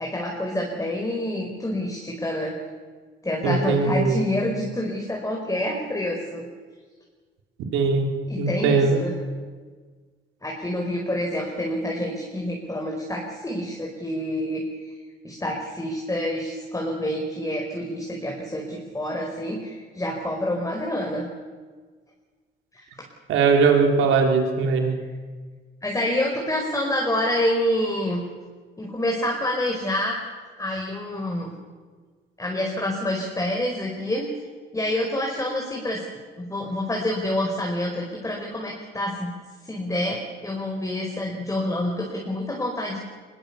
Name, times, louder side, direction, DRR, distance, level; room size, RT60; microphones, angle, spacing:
voice 1, 0.0-2.5 3.2-6.4 8.3-9.2 10.4-14.9 15.2-21.3 22.7-22.9 25.8-28.2 28.8-30.2 30.6-31.5 32.4-34.3 34.7-36.0 36.4-39.3 39.6-43.0, left 1 dB, 15° left, -1 dB, 5.0 m, -27 dB
voice 2, 3.4-4.2 7.7-8.1 8.4-9.0 23.3-25.0, right 4 dB, 90° right, 2 dB, 4.0 m, -20 dB
22.5 x 22.0 x 7.1 m, 1.5 s
cardioid pair, 90°, 20 cm